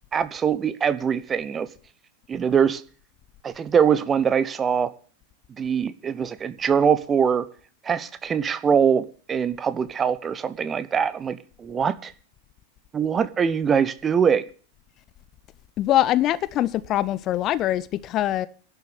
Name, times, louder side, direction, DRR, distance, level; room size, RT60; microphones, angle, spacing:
voice 1, 0.1-1.7 2.3-2.8 3.4-4.9 5.5-7.4 7.8-12.1 12.9-14.4, right 7 dB, 20° right, 1.0 m, -23 dB
voice 2, 15.8-18.5, left 13 dB, 35° left, 0.7 m, -23 dB
11.5 x 7.5 x 9.8 m
figure-of-eight pair, 90°, 0 cm